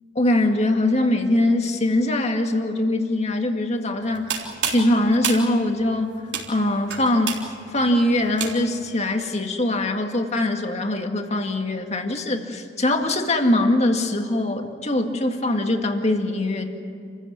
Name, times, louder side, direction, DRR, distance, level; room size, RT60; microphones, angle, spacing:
voice 1, 0.2-6.2 6.5-16.7, left 1 dB, 40° left, 4 dB, 2.0 m, -22 dB
sound 1, 4.0-8.9, right 7 dB, 70° right, 3.7 m, -31 dB
28.0 x 15.5 x 9.8 m, 2.3 s
head